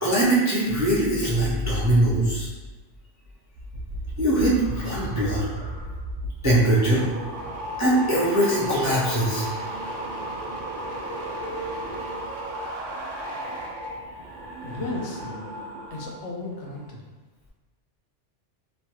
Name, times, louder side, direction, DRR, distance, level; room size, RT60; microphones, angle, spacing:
voice 1, 0.0-2.5 4.2-5.4 6.4-7.1 7.8-9.5, right 1 dB, 30° right, -8 dB, 0.3 m, -21 dB
sound 1, 3.5-16.2 16.5-16.9, right 1 dB, 90° right, 1.0 m, -34 dB
voice 2, 14.6-15.5 15.9-17.0, left 2 dB, 80° left, -2 dB, 0.9 m, -34 dB
3.1 x 2.2 x 2.8 m, 1.2 s
omnidirectional pair, 1.2 m